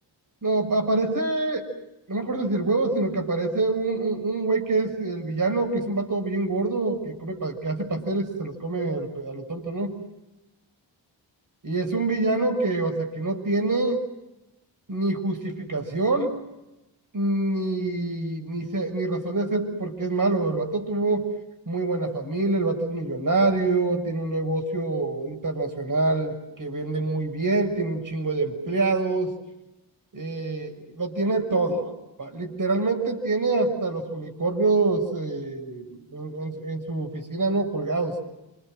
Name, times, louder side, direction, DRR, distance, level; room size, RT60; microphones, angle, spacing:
voice 1, 0.4-1.7 2.1-9.9 11.6-14.0 14.9-16.4 17.1-21.3 21.7-29.3 30.1-31.9 32.2-38.2, right 3 dB, 45° right, 5 dB, 6.4 m, -26 dB
29.5 x 26.0 x 6.3 m, 0.96 s
wide cardioid pair, 80°, 46 cm